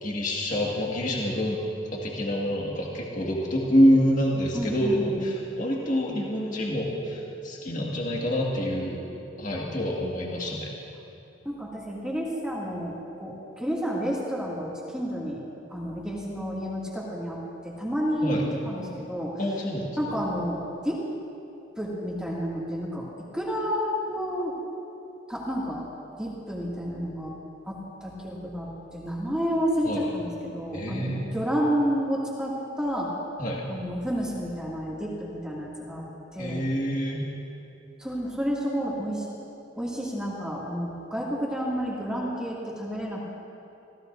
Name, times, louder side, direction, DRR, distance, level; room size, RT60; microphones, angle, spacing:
voice 1, 0.0-1.6 1.9-9.0 9.4-10.7 18.2-18.4 19.4-20.1 29.8-30.0 30.7-31.3 33.4-33.6 36.4-37.3, equal, 40° left, -3 dB, 1.9 m, -26 dB
voice 2, 4.5-5.2 11.4-15.4 15.7-17.4 17.6-19.4 20.0-21.0 21.8-24.5 25.3-25.8 26.2-27.3 27.6-33.1 33.7-36.0 36.3-36.7 38.0-39.3 39.8-43.2, equal, 5° right, -6 dB, 2.3 m, -30 dB
26.0 x 15.5 x 2.7 m, 2.8 s
head